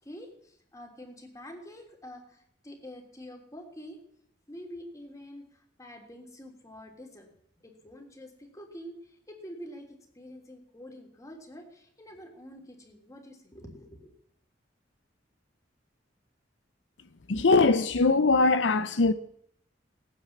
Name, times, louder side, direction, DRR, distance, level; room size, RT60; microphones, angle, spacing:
voice 1, 0.0-4.0 4.5-7.3 7.6-14.1, equal, 20° left, 3.2 m, -46 dB
voice 2, 17.3-19.1, left 3 dB, 80° left, 0.7 m, -22 dB
18.5 x 9.6 x 7.3 m
head